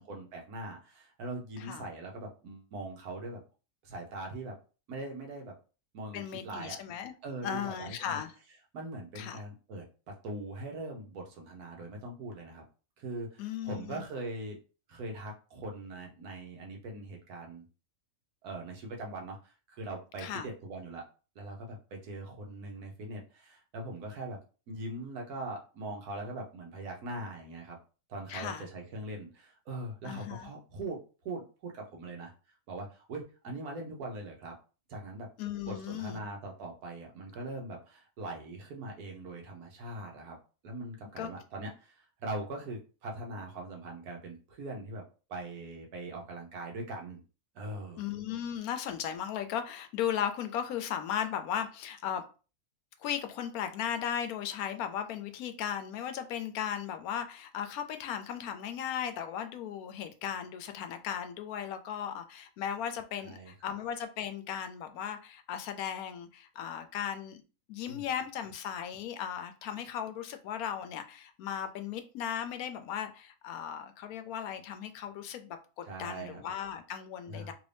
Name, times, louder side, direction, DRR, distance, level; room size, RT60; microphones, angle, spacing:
voice 1, 0.0-3.4 3.8-4.5 4.9-5.5 5.9-6.8 7.2-8.2 8.7-12.6 13.0-14.6 14.9-17.6 18.4-21.0 21.3-24.4 24.7-27.8 28.1-32.3 32.7-34.5 34.9-35.3 35.6-40.4 40.6-45.0 45.3-47.2 47.5-48.0 63.2-63.7 67.9-68.1 75.8-76.4 77.3-77.5, right 2 dB, 85° right, 1 dB, 1.4 m, -41 dB
voice 2, 6.1-7.1 7.4-8.3 9.2-9.4 13.4-14.0 20.2-20.5 28.3-28.7 30.0-30.5 35.4-36.2 41.2-41.3 48.0-52.2 53.0-67.4 67.7-77.5, left 9 dB, 80° left, 8 dB, 1.0 m, -36 dB
3.2 x 2.6 x 3.3 m, 0.35 s
omnidirectional pair, 1.6 m